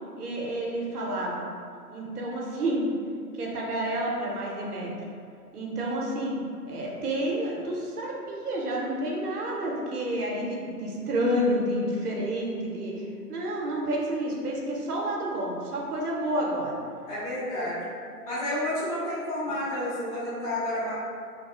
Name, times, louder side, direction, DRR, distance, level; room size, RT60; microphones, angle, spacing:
voice 1, 0.2-1.4 1.9-2.9 3.4-4.9 5.5-6.4 6.7-16.8 19.5-19.6, right 1 dB, 65° right, -3 dB, 0.7 m, -29 dB
voice 2, 17.1-17.8 18.2-20.9, left 1 dB, 25° left, -12 dB, 0.6 m, -30 dB
2.4 x 2.3 x 2.6 m, 2.3 s
figure-of-eight pair, 135°, 49 cm